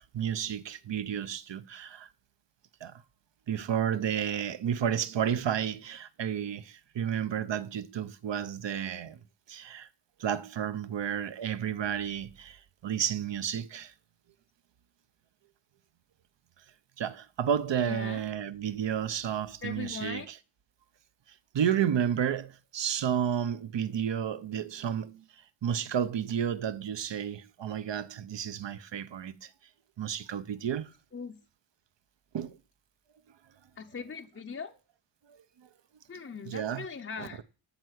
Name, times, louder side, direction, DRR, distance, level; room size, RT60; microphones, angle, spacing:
voice 1, 0.0-2.1 2.8-3.0 3.5-9.2 9.5-9.9 10.2-13.9 17.0-20.4 21.5-25.2 25.6-29.5 30.0-30.9 32.3-32.6 36.4-36.9 37.2-37.4, right 9 dB, 60° right, 0.9 m, -31 dB
voice 2, 17.8-18.2 19.6-20.3 31.1-31.3 33.8-34.7 36.1-37.4, left 5 dB, 30° left, 0.7 m, -40 dB
12.5 x 4.7 x 8.1 m
wide cardioid pair, 130°, 48 cm